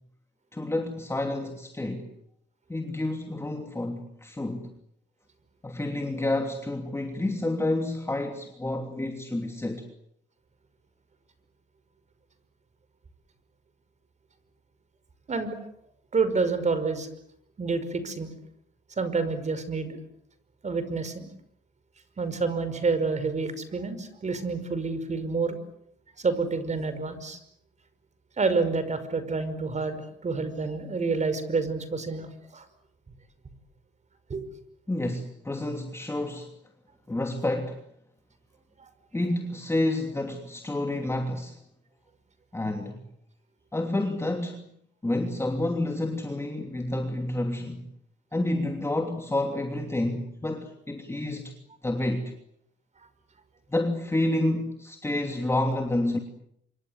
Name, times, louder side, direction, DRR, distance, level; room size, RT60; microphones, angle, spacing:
voice 1, 0.5-2.1 2.7-4.7 5.6-9.9 34.9-36.5 37.1-37.8 39.1-41.6 42.5-43.0 43.7-44.7 45.0-47.9 48.3-51.6 51.8-52.3 53.7-56.2, left 1 dB, 15° left, 3.0 m, -29 dB
voice 2, 16.1-17.1 17.6-18.3 19.0-20.0 20.6-21.2 22.2-25.6 26.2-27.4 28.4-32.6 34.3-34.5, right 4 dB, 35° right, 5.5 m, -28 dB
27.0 x 24.5 x 8.1 m
cardioid pair, 90°, 20 cm